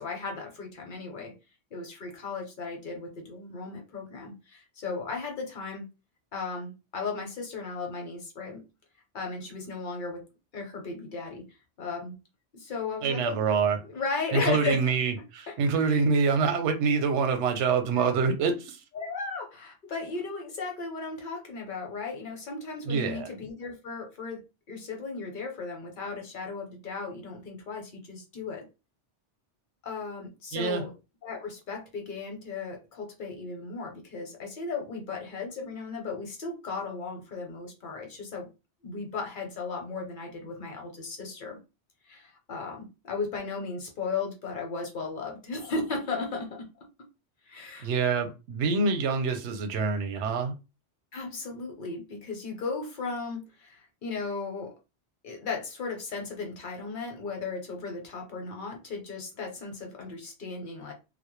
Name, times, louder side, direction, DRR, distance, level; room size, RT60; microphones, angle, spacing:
voice 1, 0.0-1.3 1.7-5.8 6.3-8.6 9.1-10.2 10.5-11.4 11.8-12.1 12.5-13.4 13.8-14.9 15.5-16.0 17.9-18.1 18.9-24.4 24.7-28.6 29.8-30.9 31.2-38.5 38.8-41.6 42.1-46.9 47.5-47.9 51.1-54.7 55.2-60.9, left 4 dB, 50° left, 0.8 m, -36 dB
voice 2, 13.0-13.8 14.3-18.8 22.8-23.3 30.5-30.8 47.8-50.5, right 5 dB, 80° right, 0.9 m, -26 dB
2.2 x 2.1 x 3.0 m
omnidirectional pair, 1.2 m